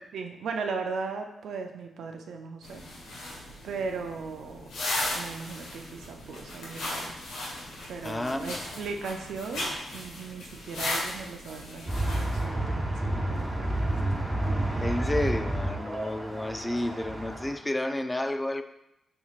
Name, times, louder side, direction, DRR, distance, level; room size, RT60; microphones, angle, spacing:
voice 1, 0.1-2.8 3.6-4.7 5.1-7.1 7.9-14.0, right 4 dB, 80° right, 4 dB, 0.4 m, -37 dB
sound 1, 2.6-12.4, left 1 dB, 90° left, 0.9 m, -36 dB
voice 2, 8.0-8.6 14.8-18.6, left 1 dB, 20° left, 8 dB, 0.3 m, -31 dB
sound 2, 11.9-17.5, right 1 dB, 20° right, 1.3 m, -30 dB
5.3 x 3.1 x 2.4 m, 0.87 s
supercardioid pair, 50°, 0 cm